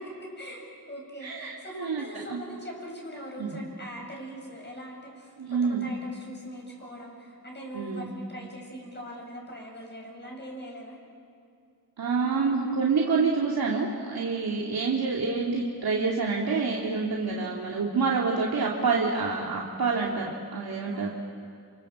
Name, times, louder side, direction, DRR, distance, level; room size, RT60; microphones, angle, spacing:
voice 1, 0.0-11.0 17.3-17.6 17.8-17.9 20.9-21.1, equal, 30° left, -1 dB, 7.8 m, -41 dB
voice 2, 1.2-2.0 2.3-2.4 3.4-3.5 5.4-5.8 7.7-8.1 12.0-21.1, right 4 dB, 85° right, -3 dB, 2.3 m, -27 dB
28.5 x 25.5 x 7.5 m, 2.3 s
wide cardioid pair, 85°, 36 cm